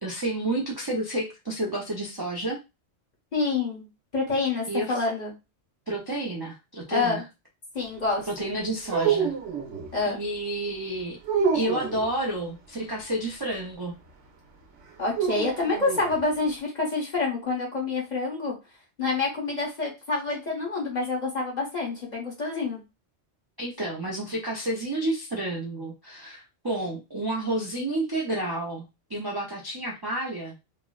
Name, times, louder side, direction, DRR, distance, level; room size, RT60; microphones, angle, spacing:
voice 1, 0.0-2.6 4.7-5.0 5.9-7.2 8.3-9.3 10.1-11.2 11.5-13.9 23.6-30.5, right 1 dB, 35° right, -3 dB, 0.4 m, -30 dB
voice 2, 3.3-3.9 4.1-5.3 6.9-7.2 7.7-8.5 9.9-10.2 15.0-18.5 19.0-22.8, left 3 dB, 40° left, -3 dB, 1.1 m, -27 dB
sound 1, 8.9-9.9 11.2-12.1 15.1-16.2, right 6 dB, 80° right, 1.0 m, -27 dB
3.6 x 2.1 x 2.3 m, 0.26 s
omnidirectional pair, 1.2 m